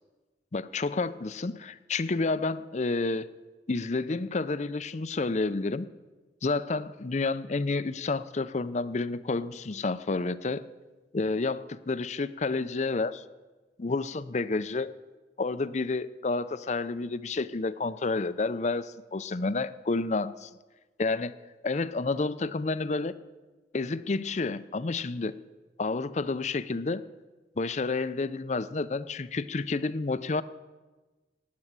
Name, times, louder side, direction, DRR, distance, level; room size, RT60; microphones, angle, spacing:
voice 1, 0.5-3.3 3.7-5.9 6.4-10.6 11.1-13.2 13.8-14.9 15.4-20.5 21.0-21.3 21.6-23.1 23.7-25.3 25.8-27.0 27.6-30.4, left 3 dB, 40° left, 15 dB, 0.5 m, -30 dB
15.5 x 9.7 x 7.4 m, 1.2 s
head